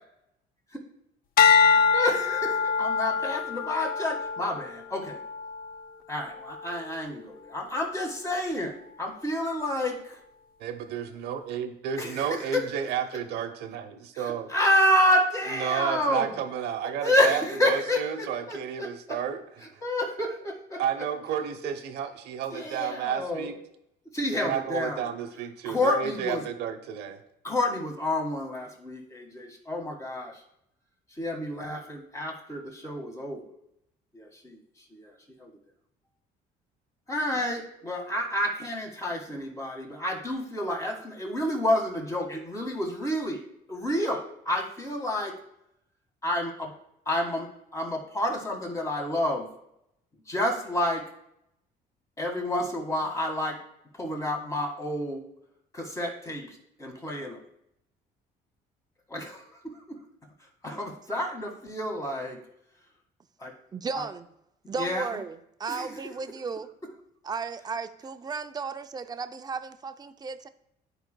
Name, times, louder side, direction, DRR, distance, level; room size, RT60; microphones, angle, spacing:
sound 1, 1.4-5.8 6.4-6.8, left 6 dB, 60° left, 0.5 m, -24 dB
voice 1, 1.6-5.2 6.1-10.2 12.0-12.7 14.1-16.3 17.0-19.2 19.8-20.8 22.5-23.5 24.1-25.1 25.7-26.5 27.4-30.4 31.2-33.5 34.1-35.5 37.1-43.4 43.7-45.3 46.2-46.7 47.1-47.5 47.7-49.5 50.3-51.0 52.2-53.6 54.0-55.2 55.7-57.4 59.1-60.0 60.6-62.4 63.4-63.5 63.9-64.1 64.8-65.2 65.7-66.0, left 1 dB, 20° left, 1.8 m, -29 dB
voice 2, 10.6-14.5 15.6-19.7 20.8-23.5 24.3-27.2, right 8 dB, 80° right, 0.8 m, -32 dB
voice 3, 63.7-64.3 64.7-66.7 67.2-70.5, right 5 dB, 25° right, 0.4 m, -35 dB
11.0 x 5.0 x 2.2 m
cardioid pair, 110°, 17 cm